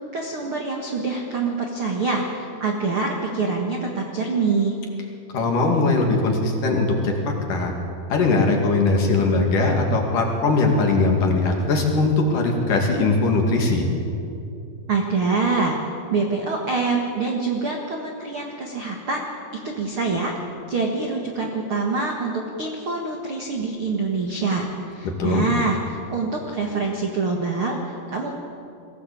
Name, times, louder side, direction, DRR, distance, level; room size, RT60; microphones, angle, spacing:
voice 1, 0.1-4.8 14.9-15.8 16.1-19.3 19.5-20.3 20.7-28.3, right 4 dB, 55° right, 1 dB, 1.4 m, -25 dB
voice 2, 5.3-7.7 8.1-13.8 25.0-25.5, left 3 dB, 55° left, 1 dB, 3.5 m, -20 dB
22.0 x 16.5 x 8.5 m, 2.7 s
omnidirectional pair, 5.1 m